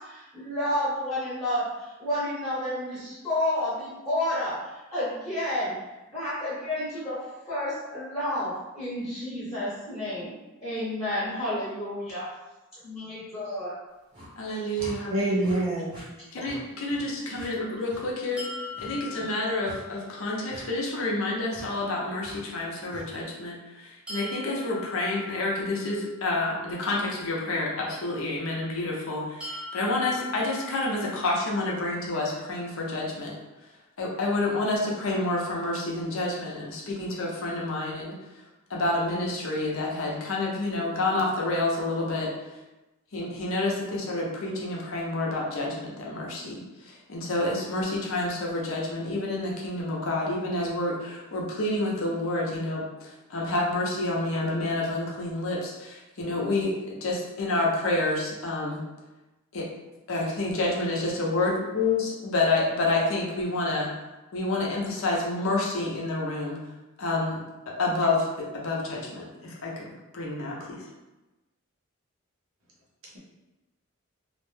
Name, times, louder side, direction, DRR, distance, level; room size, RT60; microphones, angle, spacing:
voice 1, 0.0-5.7 6.1-7.2 7.5-10.3 10.6-12.2 12.8-13.7 17.6-17.7, left 1 dB, 15° left, -11 dB, 0.9 m, -30 dB
sound 1, 14.1-14.3 14.8-15.0 15.4-15.6 15.9-16.1 16.4-16.6 16.9-17.0 17.3-17.5 17.9-18.0 18.7-18.9 19.6-19.8 20.5-20.6 21.5-21.7 22.2-22.4 22.9-23.1, equal, 20° right, 0.7 m, -44 dB
voice 2, 14.4-15.6 16.3-18.4 18.8-23.6 23.8-33.3 34.0-38.2 38.7-42.3 43.1-58.8 59.5-59.7 60.1-63.9 64.3-66.6 67.0-67.4 67.7-69.7 70.1-70.5, left 2 dB, 65° left, -3 dB, 0.6 m, -28 dB
voice 3, 15.1-16.0 17.1-17.3, right 1 dB, 65° right, -4 dB, 0.7 m, -27 dB
sound 2, 18.4-20.3 24.1-26.1 29.4-31.4, left 3 dB, 5° right, 0.3 m, -41 dB
2.4 x 2.1 x 3.2 m, 1.1 s
head